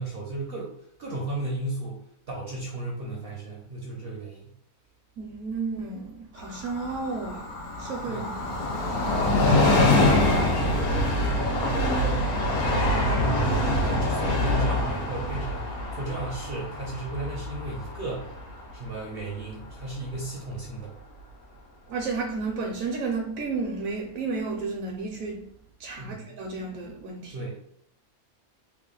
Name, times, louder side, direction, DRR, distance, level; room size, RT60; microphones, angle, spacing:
voice 1, 0.0-4.5 8.0-8.3 9.4-12.4 12.9-13.4 13.8-18.3 18.7-20.9 26.0-26.3 27.3-27.5, right 2 dB, 55° right, -2 dB, 0.7 m, -34 dB
voice 2, 5.2-8.4 21.9-25.4 25.8-27.3, right 4 dB, 75° right, 1 dB, 1.0 m, -32 dB
Train, 6.4-19.7 20.0-20.1, left 1 dB, 85° left, 1.2 m, -25 dB
3.3 x 2.3 x 3.7 m, 0.68 s
omnidirectional pair, 1.5 m